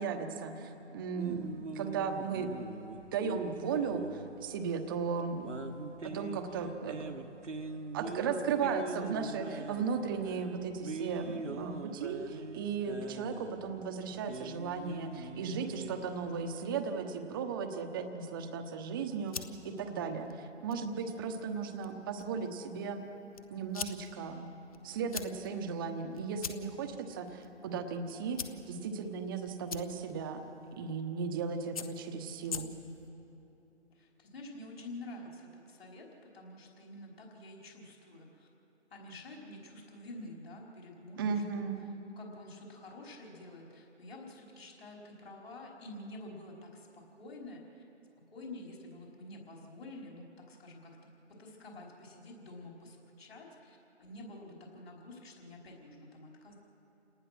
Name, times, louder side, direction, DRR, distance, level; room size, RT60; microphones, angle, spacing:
voice 1, 0.0-2.5 3.1-5.5 6.1-7.0 7.9-23.0 23.5-24.5 24.8-30.4 30.8-32.7 41.2-41.8, right 5 dB, 20° right, 6 dB, 1.1 m, -36 dB
sound 1, 1.2-16.7, right 3 dB, 80° right, 1.7 m, -43 dB
sound 2, 19.0-33.1, left 7 dB, 30° left, 1.0 m, -47 dB
voice 2, 33.9-36.1 36.3-38.5 38.9-47.8 48.3-51.0 51.3-56.5, left 1 dB, 55° left, -1 dB, 5.0 m, -49 dB
29.0 x 19.0 x 6.2 m, 3.0 s
figure-of-eight pair, 145°, 36 cm